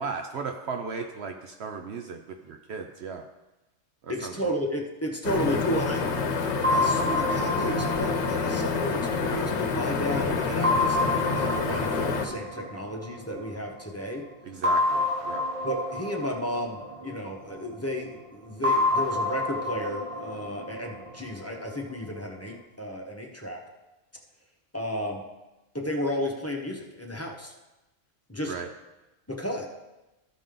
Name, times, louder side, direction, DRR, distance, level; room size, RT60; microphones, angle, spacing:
voice 1, 0.0-3.2 4.0-4.3 14.4-15.4 28.5-28.7, right 5 dB, 65° right, 5 dB, 0.8 m, -36 dB
voice 2, 4.1-6.1 6.7-14.2 15.6-23.6 24.7-25.2 25.7-27.5 28.3-28.5 29.3-29.7, equal, 15° left, 0 dB, 0.9 m, -33 dB
sound 1, 5.2-12.3, left 4 dB, 65° left, 1.0 m, -28 dB
sound 2, 6.6-10.0 10.6-13.6 14.6-17.7 18.6-21.7, left 2 dB, 30° right, 0.8 m, -29 dB
14.0 x 5.1 x 3.8 m, 1.0 s
omnidirectional pair, 1.3 m